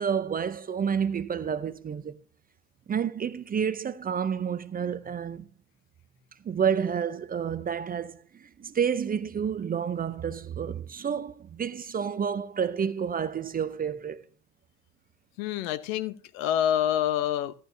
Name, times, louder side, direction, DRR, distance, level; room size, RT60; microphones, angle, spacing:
voice 1, 0.0-2.2 2.9-5.5 6.4-14.2, right 7 dB, 20° right, 0.6 m, -29 dB
voice 2, 15.4-17.5, left 10 dB, 60° left, 0.9 m, -27 dB
15.0 x 11.0 x 2.7 m
hypercardioid pair, 75°, 44 cm